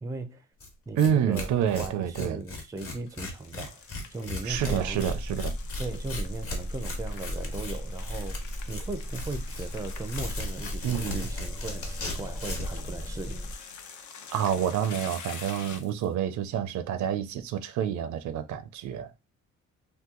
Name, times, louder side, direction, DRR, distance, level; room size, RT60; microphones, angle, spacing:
voice 1, 0.0-0.5 0.9-5.0 5.8-8.4 8.7-13.5, right 3 dB, 10° right, 0.4 m, -38 dB
Tearing, 0.6-0.7 1.0-1.1 1.3-12.8, left 2 dB, 45° left, 1.1 m, -37 dB
voice 2, 1.0-2.4 4.4-5.5 10.8-11.2 14.3-19.1, right 9 dB, 70° right, 0.5 m, -28 dB
sound 1, 3.1-16.1, left 6 dB, 75° left, 0.7 m, -46 dB
sound 2, 4.5-13.6, equal, 20° left, 0.7 m, -37 dB
2.8 x 2.2 x 3.6 m
cardioid pair, 90°, 30 cm